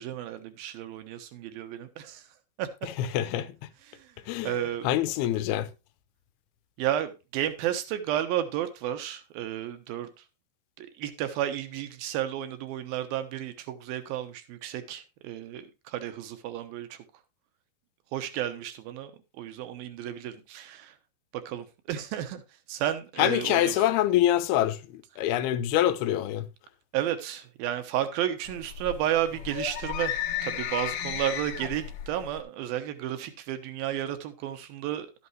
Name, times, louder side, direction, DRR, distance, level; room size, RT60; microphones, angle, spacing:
voice 1, 0.0-2.3 2.6-2.7 3.8-4.1 4.4-4.9 6.8-10.2 10.8-17.0 18.1-21.0 21.3-22.4 22.7-23.9 26.9-35.3, right 11 dB, 75° right, 2.9 m, -32 dB
voice 2, 3.1-3.5 4.3-4.5 4.8-5.7 23.2-24.8 25.2-26.4, left 12 dB, 85° left, 2.7 m, -25 dB
sound 1, 28.5-32.4, left 10 dB, 65° left, 2.3 m, -34 dB
12.5 x 8.4 x 3.1 m
omnidirectional pair, 4.4 m